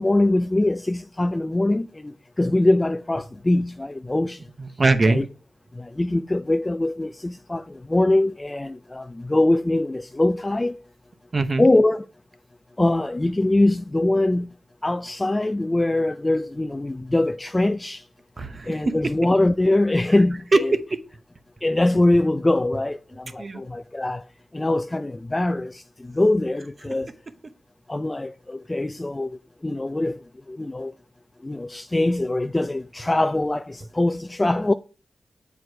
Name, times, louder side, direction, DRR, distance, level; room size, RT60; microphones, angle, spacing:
voice 1, 0.0-1.9 2.4-4.4 5.0-5.3 6.0-7.6 7.9-10.7 11.6-12.0 12.8-14.5 14.8-18.0 18.7-20.8 21.6-24.2 24.5-25.7 26.2-27.1 27.9-29.3 29.6-30.2 30.6-30.9 31.4-34.7, left 2 dB, 20° left, 0.3 m, -22 dB
voice 2, 4.6-5.2 11.3-11.7 18.4-18.8 20.5-20.6 23.4-23.6, right 3 dB, 40° right, 0.9 m, -21 dB
7.8 x 4.7 x 4.6 m
cardioid pair, 85°, 0 cm